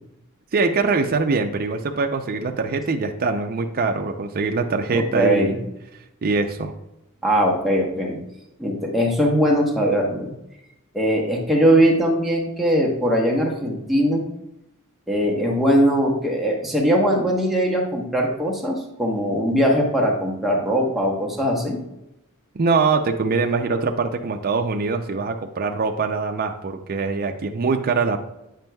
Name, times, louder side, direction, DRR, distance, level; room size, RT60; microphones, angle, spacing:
voice 1, 0.5-5.5 6.2-6.7 22.5-28.2, right 4 dB, 45° right, 3 dB, 0.5 m, -23 dB
voice 2, 4.9-5.6 7.2-8.2 8.6-10.3 10.9-14.2 15.1-21.8, equal, ahead, -3 dB, 1.0 m, -20 dB
9.0 x 5.3 x 2.3 m, 0.89 s
head